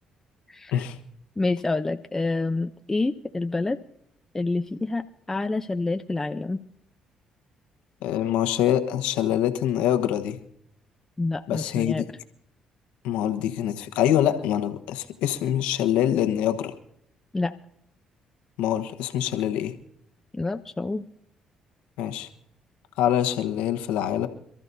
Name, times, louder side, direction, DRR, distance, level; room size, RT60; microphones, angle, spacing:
voice 1, 1.4-3.8 4.3-6.6 11.2-12.1 17.3-17.5 20.3-21.0, left 3 dB, 20° left, 7 dB, 0.7 m, -27 dB
voice 2, 8.0-10.4 11.5-12.0 13.0-16.7 18.6-19.7 22.0-22.3 23.0-24.3, left 11 dB, 85° left, 7 dB, 1.3 m, -25 dB
27.0 x 13.5 x 2.7 m, 0.71 s
supercardioid pair, 65°, 2 cm